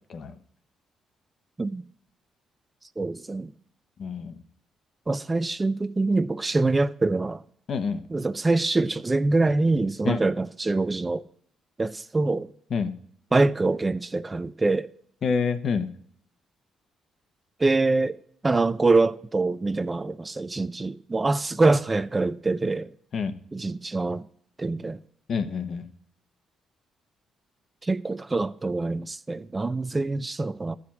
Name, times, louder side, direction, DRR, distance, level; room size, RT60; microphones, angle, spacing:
voice 1, 3.0-3.5 5.1-7.4 8.1-11.2 11.8-12.5 13.3-14.9 17.6-18.2 18.4-22.9 23.5-24.2 24.6-25.0 27.8-30.7, right 3 dB, 20° right, 0.4 m, -24 dB
voice 2, 4.0-4.4 7.7-8.0 10.0-10.2 12.7-12.9 15.2-15.9 23.1-23.4 25.3-25.8, left 5 dB, 55° left, 0.9 m, -27 dB
13.0 x 5.0 x 7.2 m
cardioid pair, 90°, 0 cm